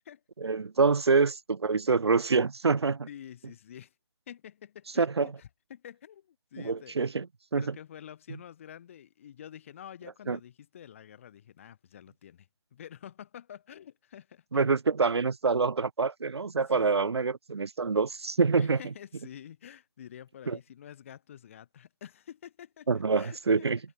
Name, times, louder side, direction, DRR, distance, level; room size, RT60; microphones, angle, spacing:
voice 1, 0.4-3.1 5.0-5.3 6.6-7.2 7.5-7.7 10.3-10.4 14.5-18.8 20.5-20.6 22.9-23.8, right 4 dB, 80° right, 0.8 m, -26 dB
voice 2, 3.1-3.9 4.3-7.1 7.5-14.6 16.6-17.1 18.6-23.7, left 9 dB, 30° left, 4.8 m, -48 dB
figure-of-eight pair, 165°, 14 cm